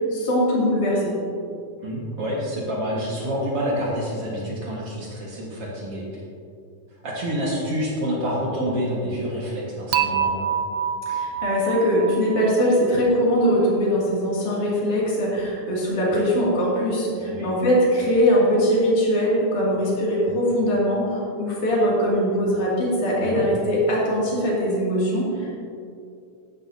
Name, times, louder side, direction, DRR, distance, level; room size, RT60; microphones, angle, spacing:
voice 1, 0.1-1.2 11.1-25.6, equal, 65° left, -5 dB, 4.0 m, -21 dB
voice 2, 1.8-6.2 7.0-10.5 17.1-17.5 23.2-23.5, equal, 50° right, -4 dB, 2.3 m, -28 dB
Dishes pots and pans / Chink clink, 9.9-13.1, right 8 dB, 75° right, 1.8 m, -26 dB
14.0 x 11.0 x 2.8 m, 2.5 s
omnidirectional pair, 3.8 m